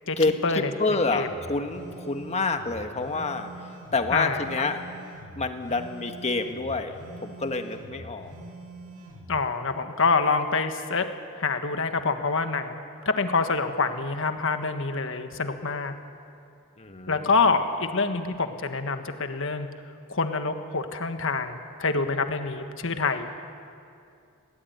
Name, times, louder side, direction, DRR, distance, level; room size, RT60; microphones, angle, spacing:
voice 1, 0.2-3.5 3.9-4.8 5.3-6.9 7.2-8.3 16.8-17.3, left 3 dB, 30° left, 6 dB, 1.4 m, -28 dB
sound 1, 0.8-9.4, right 1 dB, 90° right, 2.5 m, -44 dB
voice 2, 4.1-4.6 9.3-11.0 11.4-12.8 13.2-15.9 17.1-19.7 20.1-23.3, left 4 dB, 65° left, 7 dB, 1.5 m, -26 dB
21.0 x 17.5 x 9.4 m, 2.5 s
head